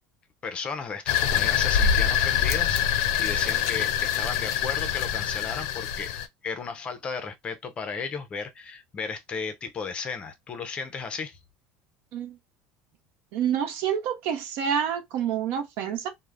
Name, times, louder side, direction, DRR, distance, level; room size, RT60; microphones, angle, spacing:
voice 1, 0.4-6.1 6.4-11.4, left 5 dB, 25° left, 0.5 m, -35 dB
sound 1, 1.1-6.3, left 9 dB, 75° left, 0.4 m, -25 dB
voice 2, 13.3-16.1, right 8 dB, 65° right, 0.6 m, -28 dB
2.3 x 2.1 x 3.2 m
cardioid pair, 145°, 4 cm